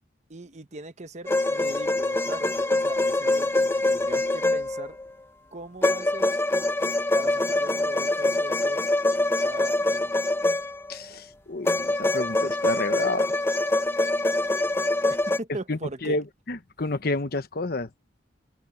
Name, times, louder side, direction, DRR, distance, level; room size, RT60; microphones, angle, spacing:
voice 1, 0.3-5.0 5.5-6.4 7.1-8.8 9.4-10.1 15.1-16.2, right 2 dB, 40° right, 1.1 m, -40 dB
sound 1, 1.3-5.1 5.8-11.0 11.7-15.4, left 2 dB, 15° left, 0.7 m, -24 dB
voice 2, 10.9-13.3 15.7-17.9, left 2 dB, 55° left, 1.1 m, -30 dB
open air
head